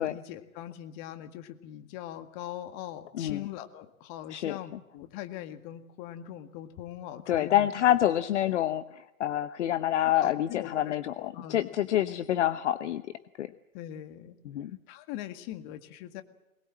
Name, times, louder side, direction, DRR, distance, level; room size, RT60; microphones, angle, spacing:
voice 1, 0.0-7.7 10.0-11.7 13.7-14.4 14.9-16.2, left 12 dB, 35° left, 9 dB, 1.9 m, -41 dB
voice 2, 7.3-13.0 13.4-13.5 14.5-14.7, left 12 dB, 55° left, 13 dB, 1.0 m, -27 dB
22.5 x 20.5 x 7.5 m, 0.97 s
figure-of-eight pair, 115°, 42 cm